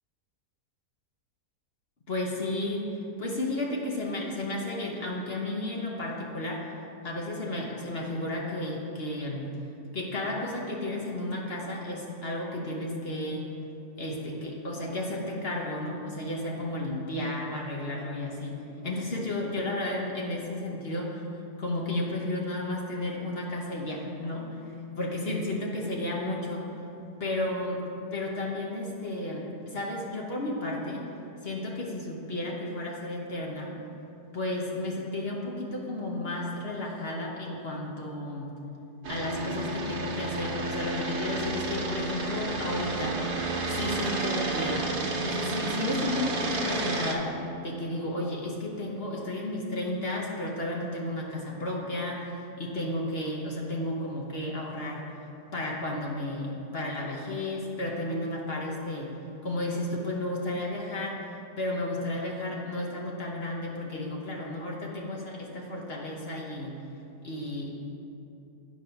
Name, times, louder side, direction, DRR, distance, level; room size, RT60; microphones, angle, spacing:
voice 1, 2.1-2.8 3.2-6.7 7.0-9.5 9.9-13.4 14.0-21.2 21.6-24.7 25.0-26.7 27.2-27.8 28.1-31.1 31.4-33.8 34.3-38.5 39.1-43.2 43.7-47.4 47.6-55.1 55.5-59.2 59.4-61.3 61.6-66.7 67.2-67.8, left 1 dB, 45° left, -2 dB, 1.0 m, -33 dB
sound 1, 39.0-47.2, right 2 dB, 80° right, 1.5 m, -31 dB
9.4 x 4.7 x 5.7 m, 2.9 s
omnidirectional pair, 1.7 m